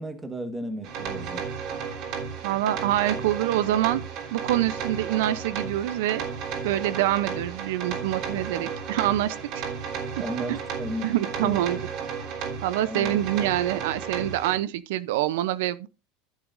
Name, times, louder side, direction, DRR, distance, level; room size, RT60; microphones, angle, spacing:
voice 1, 0.0-1.4 10.2-11.0 11.4-11.6 12.8-13.2, equal, 10° right, 1.3 m, -34 dB
sound 1, 0.8-14.5, right 6 dB, 45° right, 3.4 m, -33 dB
voice 2, 2.4-4.0 4.3-6.2 6.6-9.6 10.5-10.6 11.0-11.8 12.6-15.9, right 13 dB, 75° right, 0.6 m, -26 dB
14.0 x 8.0 x 2.6 m
supercardioid pair, 160°, 0 cm